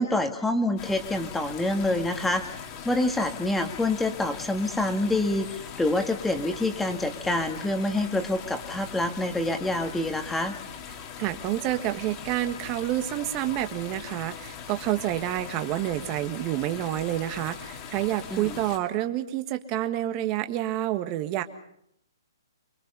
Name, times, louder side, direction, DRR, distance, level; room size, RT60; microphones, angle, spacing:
voice 1, 0.0-2.4 2.9-5.5 5.8-10.5 18.3-18.6, left 1 dB, 5° left, 6 dB, 1.8 m, -26 dB
sound 1, 0.8-18.8, left 7 dB, 30° left, 2.5 m, -41 dB
voice 2, 11.2-21.4, right 13 dB, 30° right, 7 dB, 1.5 m, -28 dB
25.0 x 23.5 x 5.5 m, 0.75 s
hypercardioid pair, 150°, 2 cm